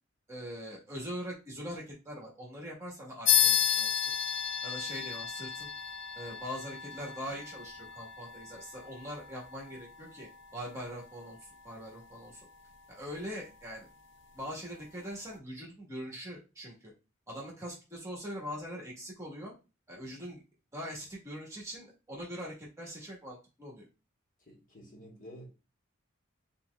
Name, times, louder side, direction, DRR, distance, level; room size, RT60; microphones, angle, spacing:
voice 1, 0.3-4.1 4.6-5.7 6.1-12.4 12.9-13.9 14.3-16.9 17.3-19.5 19.9-20.4 20.7-23.9, equal, 15° right, 1.3 m, -42 dB
sound 1, 3.3-13.2, left 9 dB, 60° left, 0.5 m, -33 dB
voice 2, 24.5-25.5, equal, 40° left, 1.4 m, -50 dB
4.2 x 4.0 x 2.3 m
head